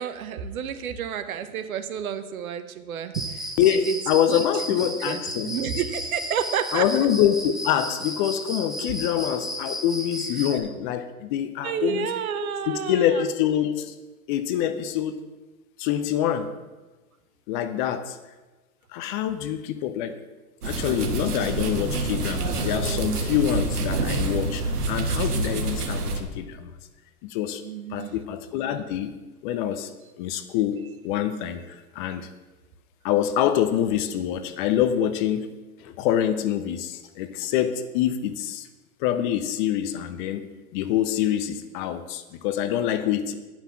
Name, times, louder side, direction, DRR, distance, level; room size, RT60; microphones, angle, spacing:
voice 1, 0.0-3.5 4.3-4.8 5.0-6.9 11.6-13.3 27.6-28.1, right 8 dB, 65° right, 11 dB, 1.1 m, -30 dB
Cricket, 3.1-10.6, equal, ahead, 0.8 m, -34 dB
voice 2, 3.6-5.8 6.7-12.1 12.3-13.9 14.3-15.2 15.8-16.5 17.5-18.2 18.9-20.2 20.6-26.7 27.2-27.6 27.9-29.1 29.4-29.9 30.2-32.3 33.0-35.5 35.8-38.7 39.0-40.5 40.7-43.4, left 10 dB, 35° left, 10 dB, 0.7 m, -25 dB
sound 1, 20.6-26.2, right 3 dB, 85° right, 1.5 m, -27 dB
9.6 x 6.0 x 7.1 m, 1.2 s
hypercardioid pair, 120°, 45 cm